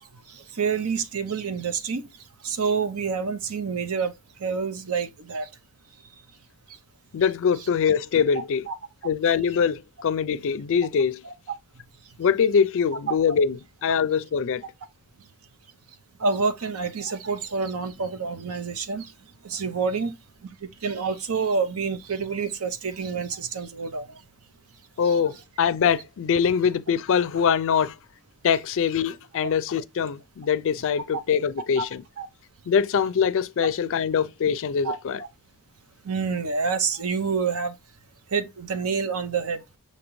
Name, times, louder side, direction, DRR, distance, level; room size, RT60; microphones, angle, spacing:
voice 1, 0.3-2.1 2.4-4.1 4.4-5.5 7.6-7.7 8.7-8.8 11.2-11.3 13.1-13.2 16.2-19.1 19.4-20.2 20.8-24.2 25.0-25.2 29.4-29.5 31.8-31.9 32.2-32.3 34.8-35.0 36.0-37.7 38.3-39.6, right 5 dB, 75° right, 0.7 m, -27 dB
voice 2, 7.1-8.7 9.0-11.2 12.2-14.6 25.0-27.9 28.4-32.0 32.7-35.2, left 7 dB, 60° left, 0.4 m, -23 dB
6.1 x 2.8 x 3.1 m
head